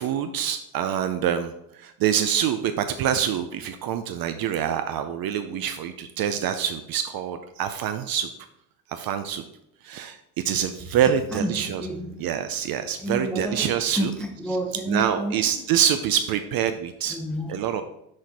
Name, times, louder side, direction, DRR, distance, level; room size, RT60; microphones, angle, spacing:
voice 1, 0.0-8.3 8.9-9.4 9.8-10.2 10.4-11.9 12.2-14.1 14.9-17.2 17.5-17.8, right 9 dB, 50° right, 9 dB, 0.5 m, -26 dB
voice 2, 11.3-12.1 13.0-13.7 14.0-15.5 17.1-17.5, equal, ahead, 2 dB, 0.7 m, -30 dB
6.4 x 4.2 x 4.7 m, 0.78 s
cardioid pair, 150°, 48 cm